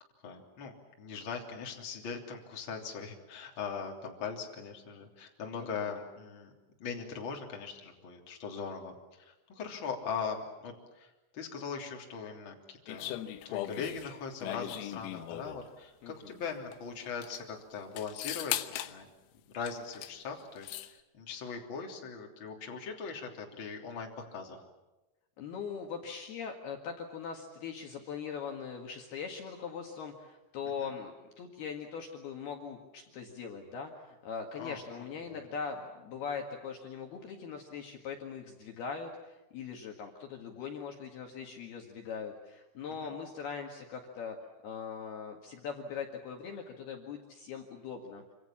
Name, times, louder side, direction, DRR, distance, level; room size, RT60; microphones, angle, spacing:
voice 1, 0.2-6.5 6.8-13.2 13.4-19.1 19.5-24.6 30.8-30.9 34.6-34.8 35.2-35.4 43.0-43.1, left 5 dB, 30° left, 1 dB, 3.1 m, -40 dB
voice 2, 5.5-5.9 16.0-16.4 25.4-44.4 44.6-48.2, left 6 dB, 60° left, 2 dB, 3.3 m, -41 dB
sound 1, 12.9-15.7 16.7-16.8 17.1-17.4 18.0-19.0 19.7-20.2 20.4-20.9, left 14 dB, 85° left, 3.8 m, -38 dB
27.0 x 26.5 x 7.3 m, 1.1 s
omnidirectional pair, 5.9 m